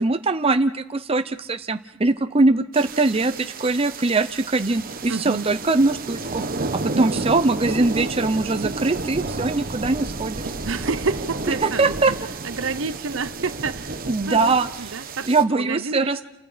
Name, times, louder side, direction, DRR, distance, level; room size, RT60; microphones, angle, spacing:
voice 1, 0.0-6.4 6.8-10.4 11.6-12.1 14.1-14.9 15.3-16.2, right 3 dB, 30° right, 8 dB, 0.7 m, -22 dB
sound 1, 2.7-15.4, right 3 dB, 45° right, 1.1 m, -31 dB
voice 2, 5.1-5.5 10.6-11.9 12.4-14.5 14.8-16.2, right 4 dB, 65° right, 12 dB, 0.9 m, -29 dB
29.0 x 24.5 x 5.1 m, 0.92 s
head